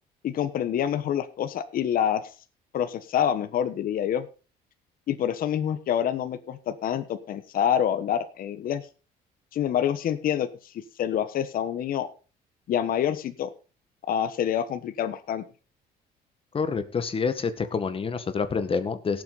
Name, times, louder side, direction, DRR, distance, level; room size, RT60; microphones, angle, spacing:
voice 1, 0.2-2.2 2.7-4.3 5.1-8.8 9.5-10.5 11.0-12.1 12.7-13.5 14.1-15.4, left 9 dB, 60° left, 10 dB, 1.3 m, -26 dB
voice 2, 16.5-19.2, left 5 dB, 35° left, 10 dB, 1.7 m, -27 dB
17.5 x 7.9 x 4.1 m, 0.34 s
cardioid pair, 110°, 17 cm